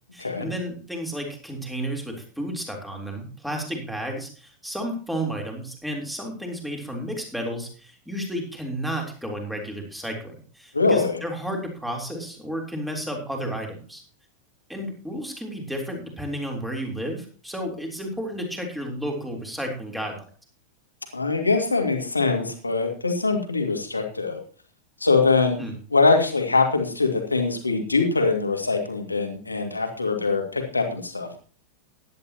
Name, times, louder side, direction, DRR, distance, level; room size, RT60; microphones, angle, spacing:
voice 1, 0.1-14.0 14.7-20.2 25.6-25.8, equal, 5° right, 1 dB, 3.6 m, -32 dB
voice 2, 10.7-11.2 21.1-24.4 25.0-25.6 25.9-31.3, left 4 dB, 85° left, 4 dB, 2.2 m, -23 dB
16.0 x 11.0 x 2.9 m, 0.40 s
figure-of-eight pair, 90°, 0 cm